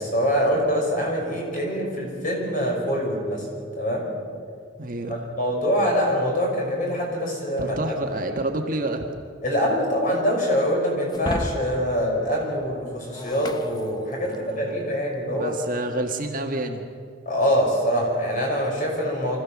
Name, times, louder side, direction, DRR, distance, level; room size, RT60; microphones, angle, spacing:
voice 1, 0.0-3.5 3.8-4.1 5.1-7.9 9.4-15.5 17.3-19.4, equal, 40° left, -1 dB, 5.6 m, -24 dB
voice 2, 4.8-5.2 7.6-9.1 14.2-14.8 15.3-16.9, right 2 dB, 45° right, 3 dB, 1.6 m, -29 dB
Shatter, 11.1-14.6, left 1 dB, 20° left, 0.7 m, -35 dB
25.0 x 15.0 x 7.3 m, 2.2 s
head